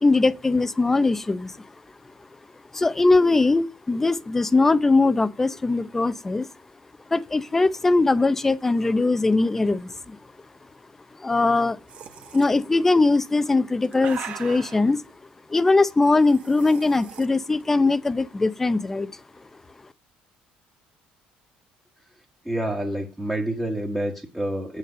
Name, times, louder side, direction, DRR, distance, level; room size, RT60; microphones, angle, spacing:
voice 1, 0.0-1.6 2.7-6.5 7.1-10.2 11.2-11.8 12.3-15.0 15.5-19.1, left 3 dB, 10° left, 0.6 m, -21 dB
sound 1, 11.9-12.5 13.5-14.9 16.0-17.3, right 8 dB, 45° right, 1.3 m, -40 dB
voice 2, 22.4-24.8, right 1 dB, 5° right, 1.4 m, -28 dB
9.0 x 6.8 x 5.0 m
cardioid pair, 165°, 3 cm